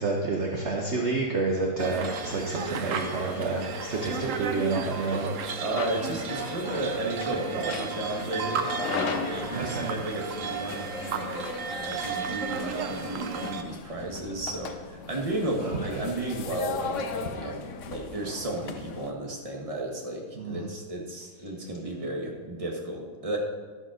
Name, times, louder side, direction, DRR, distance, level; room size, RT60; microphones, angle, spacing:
voice 1, 0.0-5.3 9.5-9.9 15.6-15.8 20.4-20.7, right 3 dB, 45° right, 0 dB, 1.0 m, -29 dB
sound 1, 1.8-13.6, right 6 dB, 70° right, 0.7 m, -34 dB
sound 2, 1.9-19.1, left 5 dB, 80° left, 0.6 m, -38 dB
voice 2, 5.6-23.4, right 2 dB, 20° right, 0 dB, 1.3 m, -33 dB
11.5 x 5.3 x 6.3 m, 1.5 s
omnidirectional pair, 2.2 m